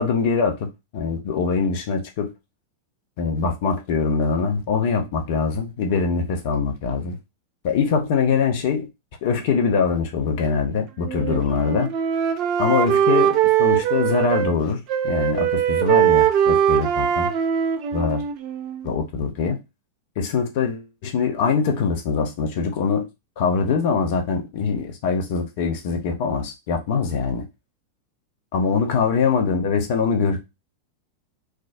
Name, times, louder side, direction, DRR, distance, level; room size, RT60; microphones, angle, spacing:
voice 1, 0.0-2.3 3.2-7.2 7.6-8.9 9.2-11.9 12.6-14.8 15.0-17.3 17.9-18.2 18.8-19.6 20.2-23.1 23.4-27.5 28.5-30.5, left 5 dB, 50° left, 0.7 m, -23 dB
Wind instrument woodwind instrument, 11.0-14.6 14.9-18.9, right 9 dB, 40° right, 0.4 m, -21 dB
3.4 x 2.0 x 2.6 m
figure-of-eight pair, 90°, 0 cm